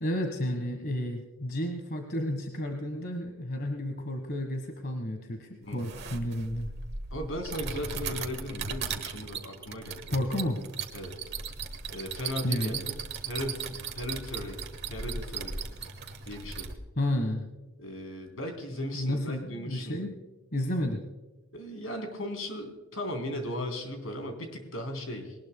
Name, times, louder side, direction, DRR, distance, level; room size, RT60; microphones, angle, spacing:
voice 1, 0.0-6.7 10.1-10.6 12.4-12.8 17.0-17.5 18.9-20.2 20.5-21.0, left 1 dB, 50° left, 4 dB, 1.5 m, -31 dB
sound 1, 5.7-16.7, right 5 dB, 50° right, 1.4 m, -37 dB
voice 2, 7.1-10.2 10.9-11.2 11.9-12.9 13.3-14.6 14.9-15.6 16.2-16.7 17.8-20.1 21.5-25.3, left 1 dB, 75° left, 3 dB, 3.5 m, -37 dB
21.0 x 19.5 x 2.2 m, 1.1 s
head